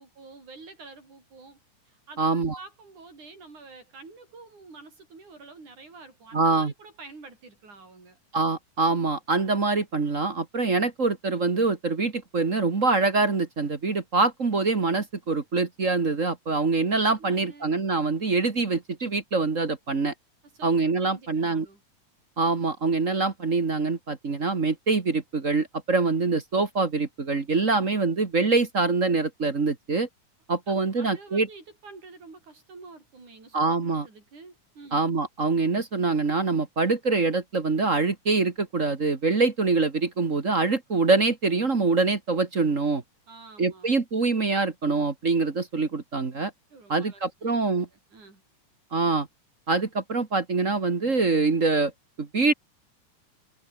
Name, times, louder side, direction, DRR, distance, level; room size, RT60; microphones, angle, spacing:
voice 1, 0.0-1.6 1.9-2.2 2.6-8.2 17.2-17.7 20.5-20.8 21.0-21.8 30.7-35.0 43.3-43.9 46.7-48.4, right 3 dB, 75° right, 9.1 m, -48 dB
voice 2, 2.2-2.6 6.3-6.7 8.3-20.1 20.6-21.7 22.4-30.1 30.5-31.5 33.5-34.1 34.9-43.0 43.6-46.5 46.9-47.9 48.9-49.3 49.7-51.9 52.2-52.5, right 3 dB, 30° right, 1.6 m, -24 dB
omnidirectional pair, 3.5 m